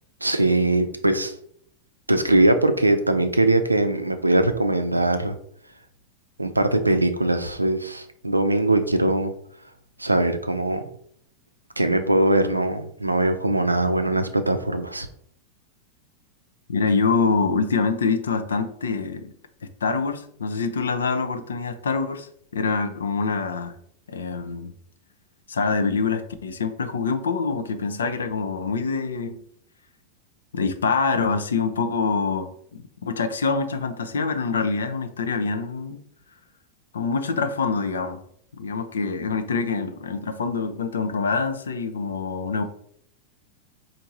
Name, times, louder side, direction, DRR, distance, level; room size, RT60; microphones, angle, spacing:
voice 1, 0.2-1.3 2.1-5.4 6.4-9.3 10.0-10.9 11.8-15.1, right 1 dB, 85° right, 8 dB, 0.4 m, -21 dB
voice 2, 16.7-19.3 19.8-23.8 24.1-24.7 25.5-29.4 30.5-36.0 36.9-38.2 38.6-42.6, left 4 dB, 70° left, 8 dB, 0.5 m, -25 dB
4.6 x 2.6 x 3.9 m, 0.66 s
figure-of-eight pair, 90°, 0 cm